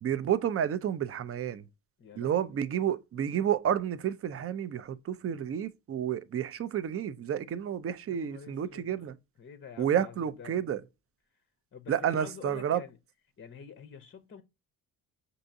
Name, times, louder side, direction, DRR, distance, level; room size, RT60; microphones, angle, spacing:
voice 1, 0.0-1.7 2.2-9.2 9.8-10.8 11.9-12.8, right 9 dB, 30° right, 0.4 m, -30 dB
voice 2, 2.0-2.5 8.1-8.9 9.4-10.6 11.7-13.0 13.4-14.4, left 7 dB, 25° left, 0.7 m, -47 dB
5.4 x 2.6 x 2.6 m
supercardioid pair, 60°, 49 cm